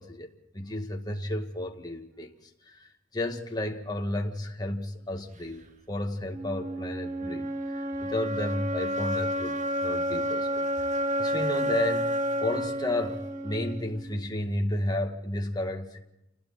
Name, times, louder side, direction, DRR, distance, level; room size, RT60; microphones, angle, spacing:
voice 1, 0.0-2.3 2.7-2.8 3.1-9.6 9.8-10.7 11.2-12.2 12.4-16.0, left 1 dB, 20° left, 2.1 m, -32 dB
sound 1, 6.3-14.3, equal, 40° right, 1.5 m, -30 dB
29.0 x 20.5 x 4.3 m
head